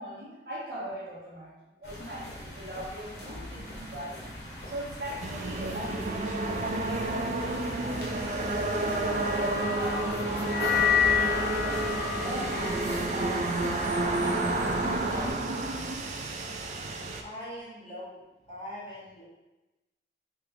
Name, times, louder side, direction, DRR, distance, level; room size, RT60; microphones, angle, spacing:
voice 1, 0.0-1.5 1.8-16.0, right 1 dB, 60° right, -7 dB, 1.3 m, -41 dB
sound 1, 1.8-15.3, left 1 dB, 70° left, 1.0 m, -39 dB
sound 2, 5.2-17.2, right 2 dB, 40° right, 0.3 m, -31 dB
sound 3, 8.8-15.2, left 7 dB, 55° left, 0.5 m, -30 dB
voice 2, 17.2-19.2, equal, 30° left, -10 dB, 1.4 m, -42 dB
3.4 x 2.8 x 3.5 m, 1.0 s
head